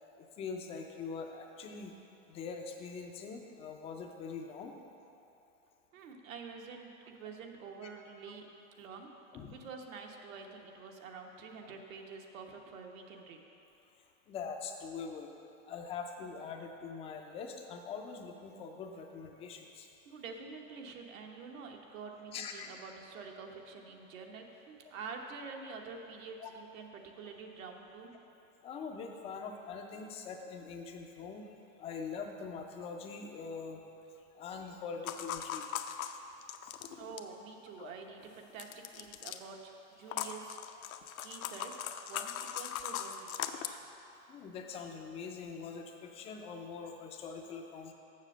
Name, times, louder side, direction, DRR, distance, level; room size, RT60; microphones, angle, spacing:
voice 1, 0.4-1.9 2.3-4.7 9.3-9.6 14.3-15.3 15.6-19.9 22.3-22.7 26.4-26.5 28.6-31.5 31.8-33.8 34.3-35.7 36.6-36.8 37.8-37.9 40.2-40.3 44.3-47.9, left 5 dB, 15° left, 3 dB, 0.3 m, -43 dB
voice 2, 5.9-8.5 8.8-9.1 9.5-13.4 20.0-28.1 36.9-40.6 41.2-43.8, right 5 dB, 75° right, 2 dB, 1.2 m, -47 dB
sound 1, 35.1-37.3 38.6-39.4 40.1-43.7, left 10 dB, 85° left, 0.7 m, -39 dB
7.3 x 6.5 x 6.5 m, 2.9 s
supercardioid pair, 135°, 41 cm